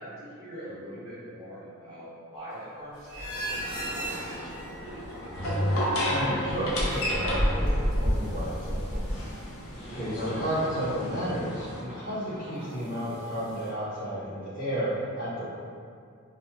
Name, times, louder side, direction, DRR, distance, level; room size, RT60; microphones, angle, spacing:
voice 1, 0.0-5.6 9.5-9.6, equal, 65° right, -13 dB, 1.3 m, -44 dB
sound 1, 2.9-13.7, equal, 60° left, 1.2 m, -44 dB
sound 2, 3.1-5.7 6.0-9.2, equal, 5° right, 1.2 m, -31 dB
sound 3, 3.2-11.8, equal, 75° left, 0.8 m, -32 dB
voice 2, 6.1-9.2 9.9-15.5, equal, 40° left, -13 dB, 1.4 m, -32 dB
4.2 x 2.4 x 2.3 m, 2.2 s
head